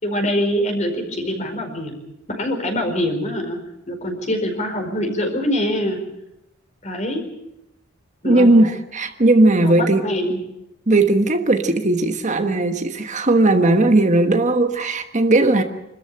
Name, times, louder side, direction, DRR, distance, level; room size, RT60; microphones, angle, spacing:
voice 1, 0.0-2.0 2.3-3.6 3.9-6.0 6.8-7.2 8.2-8.5 9.6-10.4, equal, 35° left, 4 dB, 4.7 m, -24 dB
voice 2, 8.2-10.1 10.9-15.6, right 2 dB, 40° right, 7 dB, 1.3 m, -17 dB
26.0 x 13.5 x 8.7 m, 0.89 s
head